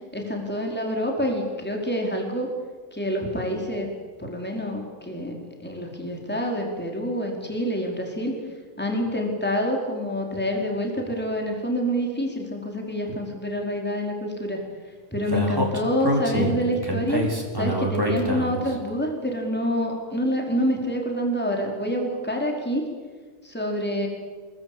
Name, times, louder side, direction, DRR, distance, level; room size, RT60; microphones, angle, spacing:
voice 1, 0.1-2.5 2.9-3.9 4.2-8.3 8.8-14.6 15.1-17.3 17.5-22.8 23.4-24.1, equal, 5° left, 0 dB, 4.9 m, -27 dB
Speech, 15.3-18.7, right 1 dB, 15° right, 4.9 m, -25 dB
27.5 x 23.5 x 8.9 m, 1.5 s
omnidirectional pair, 1.6 m